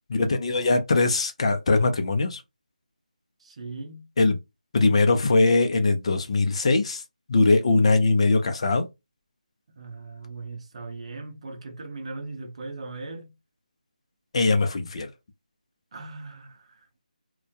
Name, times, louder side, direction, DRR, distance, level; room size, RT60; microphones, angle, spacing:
voice 1, 0.1-2.4 4.2-4.4 4.7-7.0 7.3-8.9 14.3-15.1, left 3 dB, 40° left, 0.4 m, -21 dB
voice 2, 3.4-4.1 9.8-13.3 15.9-16.8, right 3 dB, 45° right, 0.7 m, -39 dB
2.2 x 2.1 x 2.7 m
figure-of-eight pair, 160°, 5 cm